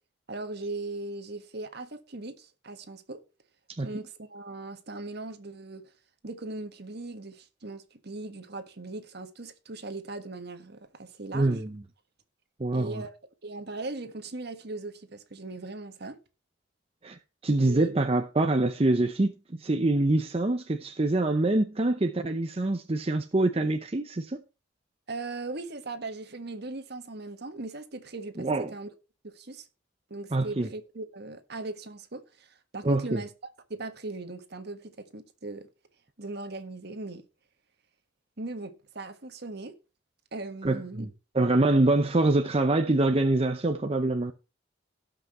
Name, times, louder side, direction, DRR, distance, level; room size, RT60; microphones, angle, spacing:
voice 1, 0.3-3.2 3.8-5.9 6.2-11.6 12.7-13.1 13.4-16.2 17.6-17.9 25.1-28.9 29.2-29.7 30.1-35.7 36.2-37.3 38.4-39.7 40.3-41.1, right 2 dB, 55° right, 1.5 m, -39 dB
voice 2, 11.3-11.8 12.6-13.0 17.0-17.2 17.4-19.3 19.6-24.4 28.4-28.7 30.3-30.7 32.8-33.2 40.6-41.1 41.3-44.3, right 2 dB, 30° right, 0.7 m, -25 dB
17.5 x 6.0 x 3.1 m
head